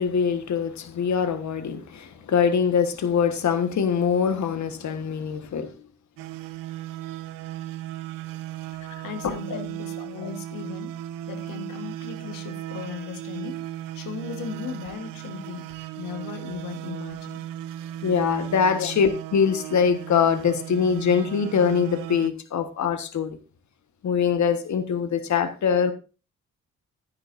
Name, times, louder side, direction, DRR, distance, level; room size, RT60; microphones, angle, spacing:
voice 1, 0.0-5.8 9.2-9.6 18.0-23.4 24.0-25.9, left 6 dB, 60° left, 1.4 m, -23 dB
sound 1, 6.2-22.3, right 13 dB, 75° right, 0.7 m, -36 dB
voice 2, 9.0-11.0 11.3-13.6 13.9-15.7 16.0-17.5 18.7-18.9, left 7 dB, 75° left, 1.5 m, -37 dB
12.5 x 10.5 x 2.6 m
hypercardioid pair, 50°, 33 cm